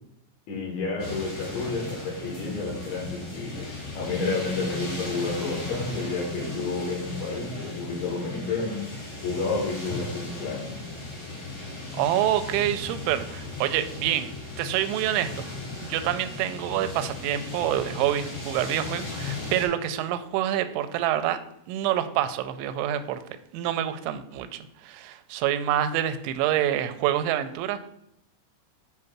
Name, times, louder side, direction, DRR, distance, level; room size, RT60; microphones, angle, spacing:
voice 1, 0.5-8.8 9.2-10.8, left 3 dB, 70° left, -3 dB, 3.7 m, -30 dB
sound 1, 1.0-19.7, left 3 dB, 30° left, 1.5 m, -37 dB
voice 2, 11.9-14.3 14.6-15.5 15.8-21.4 21.7-23.2 23.5-27.8, right 11 dB, 85° right, 10 dB, 2.8 m, -27 dB
8.8 x 3.1 x 5.9 m, 0.76 s
omnidirectional pair, 5.7 m